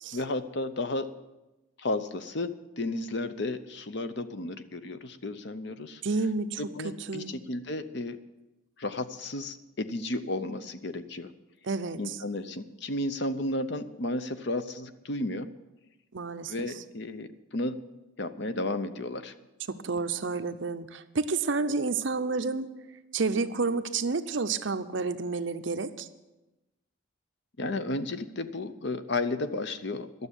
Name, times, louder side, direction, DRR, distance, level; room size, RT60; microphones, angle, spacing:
voice 1, 0.1-1.1 1.8-2.5 2.8-6.0 6.6-8.2 8.8-11.3 12.0-15.5 16.5-17.8 18.2-19.3 27.6-30.1, left 2 dB, 55° left, 11 dB, 0.7 m, -33 dB
voice 2, 6.0-6.6 7.1-7.4 11.6-12.2 16.1-16.5 19.7-22.7 23.1-26.1, right 4 dB, 65° right, 10 dB, 0.7 m, -30 dB
12.0 x 7.0 x 9.9 m, 1.0 s
head